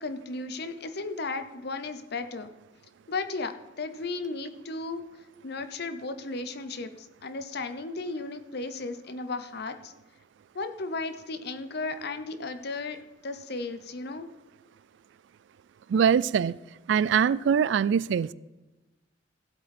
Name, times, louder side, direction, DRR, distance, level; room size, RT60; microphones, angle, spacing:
voice 1, 0.0-2.5 3.1-5.0 5.4-9.9 10.5-13.0 13.2-14.3, left 3 dB, 55° left, 0.8 m, -35 dB
voice 2, 15.9-16.6 16.9-18.3, right 7 dB, 65° right, 0.3 m, -23 dB
15.0 x 8.0 x 4.3 m
head